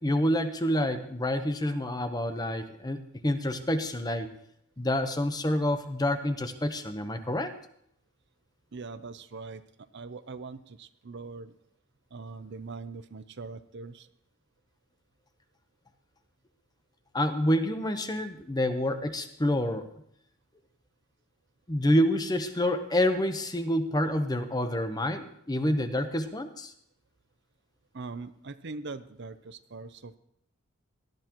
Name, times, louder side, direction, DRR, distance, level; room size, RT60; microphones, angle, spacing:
voice 1, 0.0-4.3 4.8-7.5 17.1-19.9 21.7-26.7, left 1 dB, 20° left, 8 dB, 0.9 m, -28 dB
voice 2, 8.7-9.6 9.9-11.5 12.1-14.1 27.9-30.2, right 4 dB, 55° right, 12 dB, 0.6 m, -41 dB
18.5 x 12.5 x 3.0 m, 0.71 s
head